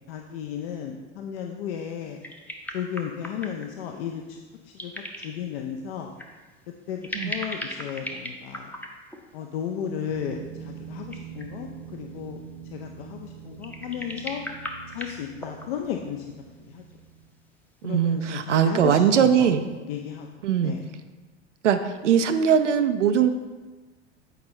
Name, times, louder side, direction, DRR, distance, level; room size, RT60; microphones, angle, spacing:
voice 1, 0.1-2.2 2.7-4.2 4.7-4.9 5.2-6.1 6.9-8.7 9.3-12.4 12.7-14.4 14.9-16.2 16.7-16.8 17.8-19.5 19.9-20.3 20.6-20.8, left 8 dB, 55° left, 3 dB, 0.6 m, -34 dB
sound 1, 1.9-2.0 2.2-3.8 4.7-5.5 6.2-6.4 7.0-9.5 10.7-10.8 10.9-11.7 13.6-15.9 16.9-17.0 18.1-18.3, equal, 5° left, 0.6 m, -37 dB
sound 2, 10.1-17.3, right 8 dB, 30° right, 0.7 m, -43 dB
voice 2, 17.8-19.6 20.4-20.7 21.6-23.3, right 8 dB, 80° right, 9 dB, 0.5 m, -21 dB
7.9 x 5.1 x 3.1 m, 1.3 s
figure-of-eight pair, 80°, 36 cm